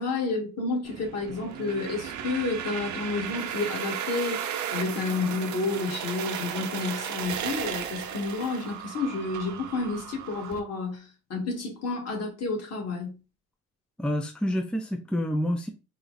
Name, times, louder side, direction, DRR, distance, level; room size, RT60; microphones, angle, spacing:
voice 1, 0.0-4.4 4.7-13.2, left 3 dB, 55° left, 2.0 m, -30 dB
sound 1, 0.8-10.6, right 9 dB, 70° right, 0.7 m, -35 dB
voice 2, 14.0-15.7, equal, 5° left, 0.6 m, -28 dB
4.4 x 2.4 x 4.0 m
cardioid pair, 90°, 30 cm